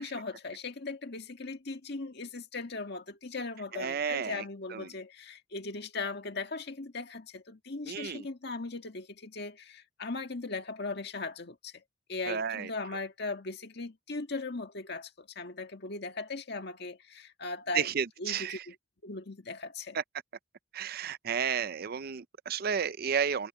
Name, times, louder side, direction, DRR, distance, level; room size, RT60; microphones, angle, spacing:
voice 1, 0.0-11.8 12.1-17.9 18.2-18.7 19.0-20.0, left 3 dB, 60° left, 1.8 m, -38 dB
voice 2, 3.7-4.4 4.7-4.9 7.9-8.3 12.3-12.7 17.7-18.6 19.9-20.0 20.7-23.5, right 7 dB, 50° right, 0.5 m, -32 dB
head